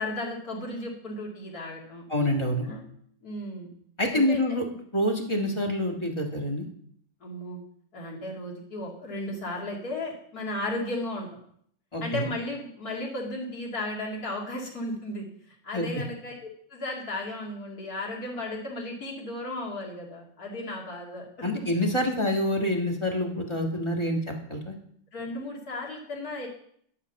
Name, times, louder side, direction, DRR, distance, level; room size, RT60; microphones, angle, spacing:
voice 1, 0.0-2.0 2.6-2.8 3.2-3.7 4.1-4.4 7.2-7.6 7.9-11.4 12.0-15.2 15.6-21.3 25.1-26.5, left 1 dB, 50° left, -2 dB, 2.8 m, -35 dB
voice 2, 2.1-2.6 4.0-4.6 4.9-6.7 11.9-12.3 15.7-16.0 21.4-24.7, left 1 dB, 15° left, 1 dB, 1.4 m, -27 dB
11.0 x 5.9 x 6.9 m, 0.65 s
omnidirectional pair, 2.2 m